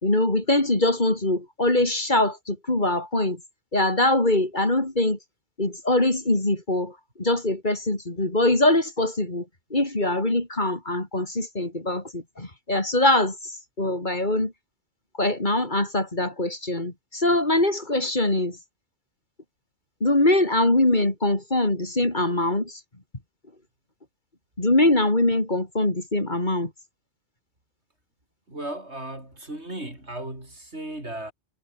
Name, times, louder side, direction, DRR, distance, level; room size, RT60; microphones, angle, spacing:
voice 1, 0.0-3.4 3.7-5.2 5.6-9.5 9.7-14.5 15.2-18.6 20.0-22.8 24.6-26.7, left 1 dB, 40° left, 3.9 m, -23 dB
voice 2, 28.5-31.3, right 1 dB, 70° right, 7.8 m, -36 dB
omnidirectional pair, 1.2 m